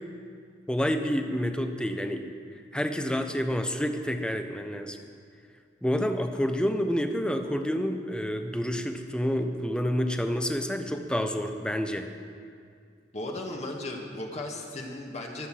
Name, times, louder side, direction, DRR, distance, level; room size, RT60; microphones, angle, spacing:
voice 1, 0.7-2.2 2.7-5.0 5.8-12.1, equal, 5° left, 6 dB, 1.0 m, -28 dB
voice 2, 13.1-15.5, left 2 dB, 40° left, 0 dB, 1.9 m, -36 dB
23.0 x 8.2 x 7.5 m, 2.2 s
head